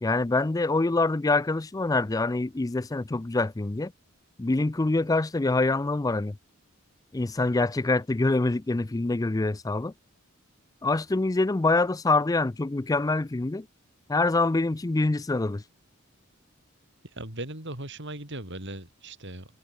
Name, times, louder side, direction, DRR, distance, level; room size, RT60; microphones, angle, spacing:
voice 1, 0.0-3.9 4.4-6.4 7.1-9.9 10.8-13.7 14.1-15.6, left 2 dB, 15° left, 0.4 m, -25 dB
voice 2, 17.0-19.5, right 1 dB, 55° right, 6.9 m, -38 dB
head